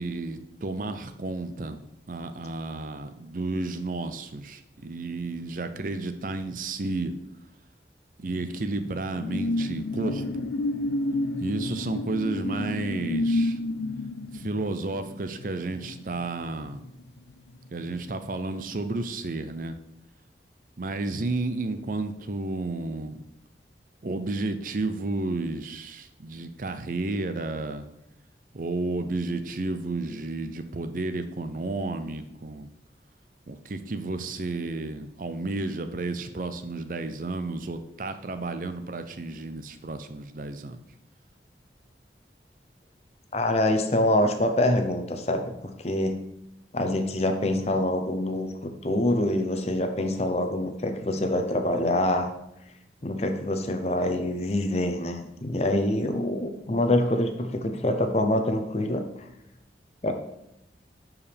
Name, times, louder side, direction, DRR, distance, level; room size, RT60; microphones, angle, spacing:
voice 1, 0.0-7.1 8.2-10.5 11.4-13.6 14.3-16.8 17.7-19.7 20.8-23.3 24.0-27.9 28.5-32.7 33.5-40.8, right 2 dB, 45° right, 9 dB, 0.6 m, -32 dB
sound 1, 8.3-17.3 17.7-17.9, left 1 dB, 70° left, 0.4 m, -30 dB
voice 2, 43.3-46.2 46.7-52.3 53.0-59.3 60.0-60.1, left 1 dB, 35° left, 6 dB, 0.7 m, -25 dB
11.0 x 4.8 x 3.4 m, 0.83 s
head